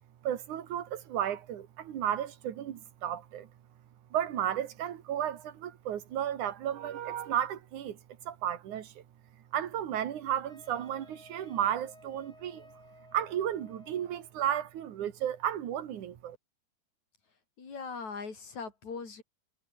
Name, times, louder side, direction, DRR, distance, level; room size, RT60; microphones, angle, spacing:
voice 1, 0.2-3.5 4.1-9.0 9.5-12.7 13.1-16.4, right 10 dB, 80° right, 3.2 m, -33 dB
Wind instrument woodwind instrument, 10.5-14.3, left 1 dB, 10° left, 5.0 m, -56 dB
voice 2, 17.6-19.2, left 5 dB, 65° left, 6.3 m, -40 dB
omnidirectional pair, 3.5 m